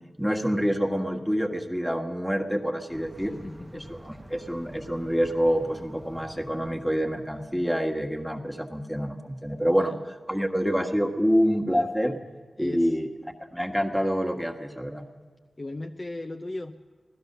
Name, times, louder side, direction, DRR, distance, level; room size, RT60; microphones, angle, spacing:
voice 1, 0.0-3.3 3.7-12.2 12.6-15.0, equal, 5° left, 2 dB, 1.5 m, -27 dB
sound 1, 2.9-8.4, right 1 dB, 25° right, 1.0 m, -48 dB
voice 2, 3.2-4.2 9.8-10.0 12.6-12.9 15.6-16.8, left 2 dB, 40° left, 5 dB, 0.6 m, -38 dB
16.0 x 12.0 x 6.7 m, 1.5 s
cardioid pair, 40°, 0 cm